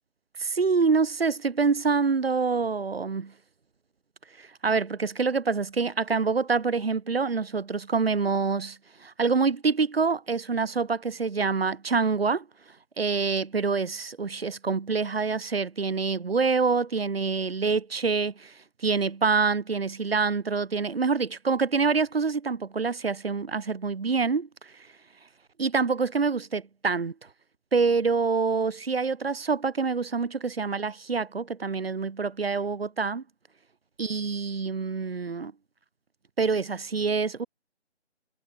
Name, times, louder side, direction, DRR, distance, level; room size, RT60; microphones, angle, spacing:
voice 1, 0.4-3.3 4.4-12.4 13.0-18.5 18.8-24.5 25.6-27.1 27.7-33.2 34.0-35.5 36.4-37.5, right 4 dB, 60° right, 5.5 m, -26 dB
figure-of-eight pair, 165°, 34 cm